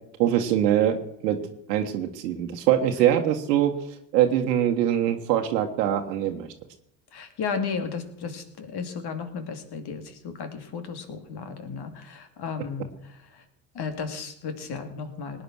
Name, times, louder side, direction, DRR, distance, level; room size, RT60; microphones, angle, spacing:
voice 1, 0.2-1.4 1.7-3.7 4.1-6.5, right 11 dB, 85° right, 4 dB, 1.4 m, -23 dB
voice 2, 7.1-13.4 13.7-15.4, left 5 dB, 55° left, 8 dB, 2.8 m, -34 dB
18.5 x 9.5 x 6.2 m, 0.73 s
hypercardioid pair, 65°, 48 cm